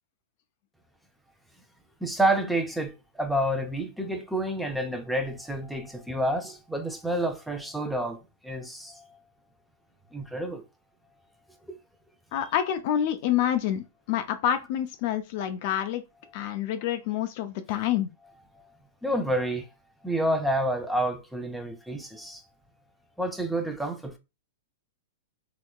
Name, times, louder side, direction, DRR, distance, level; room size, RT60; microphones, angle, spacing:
voice 1, 2.0-9.1 10.1-10.6 11.7-11.8 19.0-19.7 20.0-22.4 23.2-24.2, right 1 dB, 5° right, 0.6 m, -29 dB
voice 2, 12.3-16.0 16.3-18.1, left 10 dB, 50° left, 0.5 m, -27 dB
3.2 x 2.9 x 2.3 m
hypercardioid pair, 115°, 0 cm